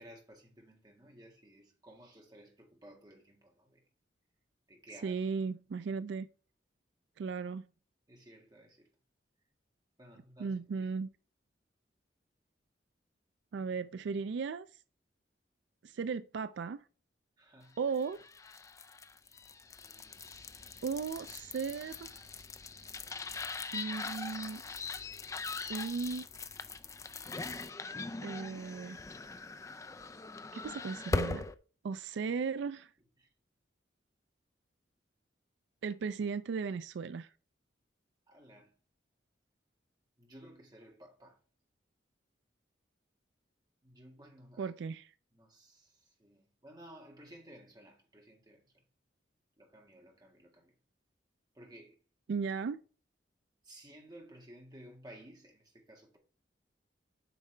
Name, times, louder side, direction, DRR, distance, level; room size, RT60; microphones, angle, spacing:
voice 1, 0.0-3.8 4.7-5.1 8.1-8.9 10.0-10.5 17.4-17.8 31.9-32.0 33.2-33.3 38.3-38.7 40.2-41.4 43.8-44.7 45.3-48.6 49.6-50.7 51.5-51.9 53.6-56.2, right 1 dB, 20° right, 1.7 m, -55 dB
voice 2, 5.0-6.3 7.2-7.7 10.4-11.1 13.5-14.7 15.8-16.8 17.8-18.2 20.8-22.1 23.7-24.6 25.7-26.3 28.2-29.0 30.5-31.5 31.8-32.9 35.8-37.3 44.6-45.1 52.3-52.8, right 5 dB, 70° right, 0.3 m, -36 dB
sound 1, 17.9-31.5, left 3 dB, 15° left, 0.3 m, -41 dB
8.5 x 5.4 x 3.3 m
head